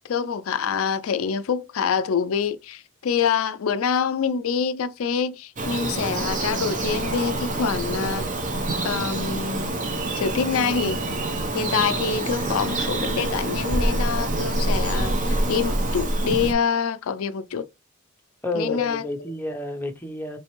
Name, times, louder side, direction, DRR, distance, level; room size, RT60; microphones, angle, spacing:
voice 1, 0.1-8.2 8.8-9.8 10.1-11.0 11.5-17.7 18.6-19.0, left 6 dB, 80° left, 0.4 m, -26 dB
Bird vocalization bird call bird song, 5.6-16.5, right 2 dB, 35° right, 0.8 m, -26 dB
voice 2, 18.4-20.4, left 1 dB, 10° left, 0.6 m, -30 dB
4.2 x 3.3 x 3.0 m
head